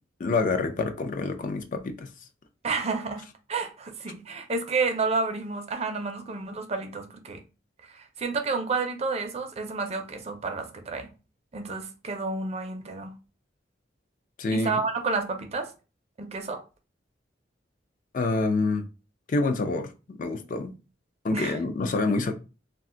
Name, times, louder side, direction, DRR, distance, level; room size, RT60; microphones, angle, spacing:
voice 1, 0.2-2.1 14.4-14.8 18.1-18.9 19.3-20.7 21.2-22.3, left 3 dB, 45° left, 0.4 m, -27 dB
voice 2, 2.6-7.4 7.8-11.1 11.5-13.1 14.5-15.7 16.2-16.6 21.3-21.6, right 4 dB, 35° right, 0.5 m, -30 dB
2.4 x 2.2 x 3.7 m
head